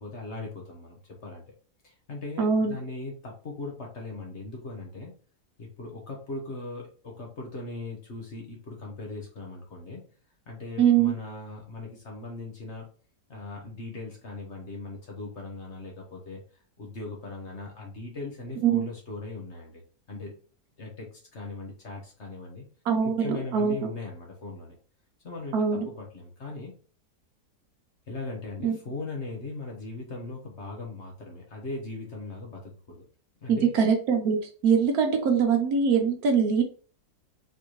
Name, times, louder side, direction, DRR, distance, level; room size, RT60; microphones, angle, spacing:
voice 1, 0.0-1.4 1.8-5.1 5.6-10.0 10.5-12.9 13.3-16.4 16.8-19.8 20.1-20.3 20.8-22.6 23.0-24.7 25.2-26.7 28.1-33.1 33.4-33.7, left 3 dB, 45° left, -1 dB, 1.4 m, -39 dB
voice 2, 2.4-2.7 10.8-11.1 18.6-18.9 22.8-23.9 25.5-25.9 28.6-28.8 33.5-36.6, right 6 dB, 65° right, 4 dB, 1.2 m, -23 dB
4.7 x 3.4 x 3.0 m, 0.40 s
omnidirectional pair, 1.8 m